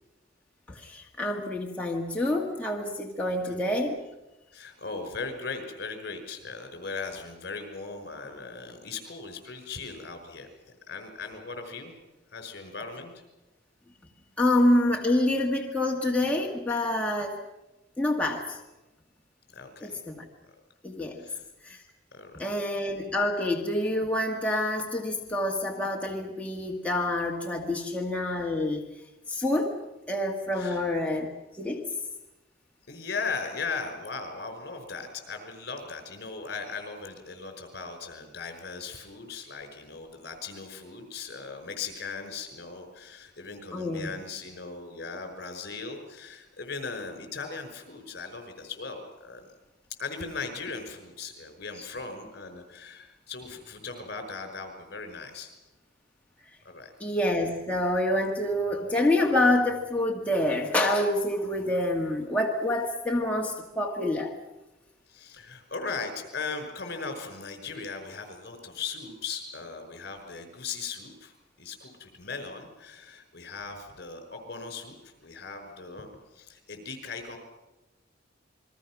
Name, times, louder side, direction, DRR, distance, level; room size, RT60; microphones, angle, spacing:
voice 1, 0.7-4.0 14.4-17.4 18.0-18.6 19.8-20.2 20.8-21.2 21.6-21.8 22.4-28.9 29.3-29.7 30.1-31.3 31.6-31.8 43.7-44.1 57.0-64.3, left 1 dB, 5° left, -1 dB, 1.8 m, -27 dB
voice 2, 3.2-3.6 4.5-11.9 12.3-13.1 19.5-20.0 21.2-21.4 22.1-22.5 30.5-30.8 32.9-49.4 50.0-55.5 56.6-56.9 65.1-76.1 76.3-77.4, left 4 dB, 60° left, 7 dB, 5.4 m, -38 dB
28.5 x 22.0 x 6.1 m, 1.1 s
head